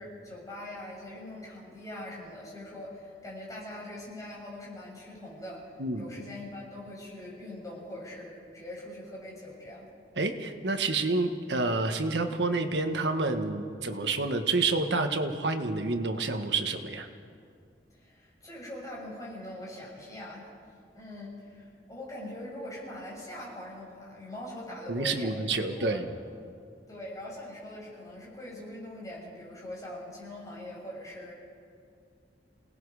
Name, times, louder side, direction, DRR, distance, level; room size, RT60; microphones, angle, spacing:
voice 1, 0.0-5.6 6.0-9.9 17.9-20.4 20.9-26.0 26.9-31.3, left 1 dB, 20° left, -5 dB, 6.9 m, -42 dB
voice 2, 10.2-17.1 24.9-26.0, right 3 dB, 80° right, 6 dB, 1.5 m, -28 dB
28.5 x 19.0 x 4.9 m, 2.3 s
head